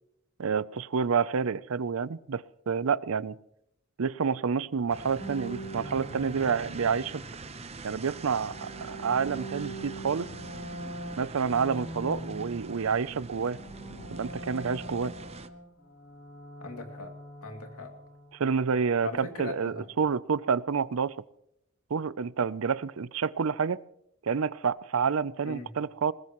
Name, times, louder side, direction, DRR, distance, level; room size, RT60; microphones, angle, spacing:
voice 1, 0.4-3.4 4.0-7.2 7.8-10.3 11.2-13.6 14.1-15.1 18.3-21.1 21.9-23.8 24.2-26.1, right 6 dB, 70° right, 19 dB, 0.5 m, -28 dB
sound 1, 4.9-15.5, right 3 dB, 30° right, 0.8 m, -44 dB
sound 2, 5.2-7.6 8.2-13.1 13.4-18.3, right 1 dB, 65° left, 5.3 m, -43 dB
voice 2, 16.6-17.1 17.4-17.9 19.0-19.9 25.4-25.8, left 3 dB, 85° left, 5 dB, 2.4 m, -39 dB
20.5 x 20.5 x 3.1 m, 0.77 s
head